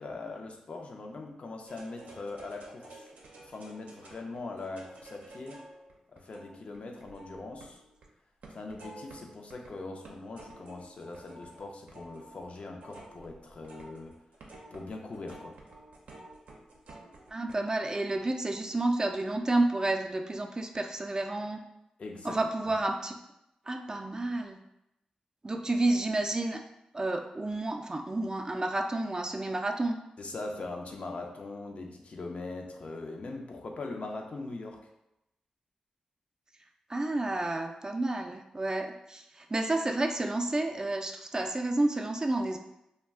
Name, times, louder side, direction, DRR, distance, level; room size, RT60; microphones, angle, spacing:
voice 1, 0.0-3.1 3.4-5.6 6.1-7.8 8.5-14.2 14.7-15.6 22.0-22.4 30.2-34.8, left 3 dB, 60° left, 2 dB, 0.4 m, -41 dB
sound 1, 1.7-8.1 8.4-9.7 10.0-17.6, right 2 dB, 85° right, 0.5 m, -51 dB
voice 2, 17.3-21.6 22.2-23.2 23.7-24.6 25.4-26.6 26.9-30.0 36.9-42.6, right 2 dB, 30° right, 4 dB, 0.3 m, -30 dB
2.3 x 2.1 x 3.4 m, 0.86 s
cardioid pair, 50°, 2 cm